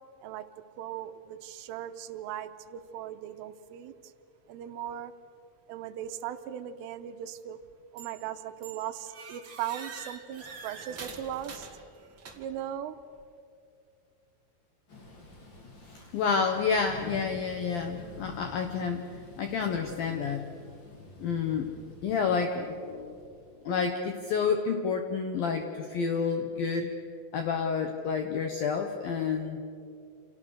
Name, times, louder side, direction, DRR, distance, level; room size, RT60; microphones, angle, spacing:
voice 1, 0.8-4.1 4.5-5.1 5.7-7.6 7.9-11.7 12.3-13.0, right 10 dB, 80° right, 9 dB, 3.4 m, -38 dB
sound 1, 8.0-8.3 8.6-12.7, right 5 dB, 40° right, 1.8 m, -45 dB
Thunder / Rain, 14.9-23.7, left 2 dB, 25° left, 3.0 m, -49 dB
voice 2, 15.8-20.6 21.2-23.2 23.7-26.9 27.3-29.6, left 5 dB, 75° left, 5 dB, 2.1 m, -30 dB
29.0 x 28.5 x 6.5 m, 2.5 s
omnidirectional pair, 5.9 m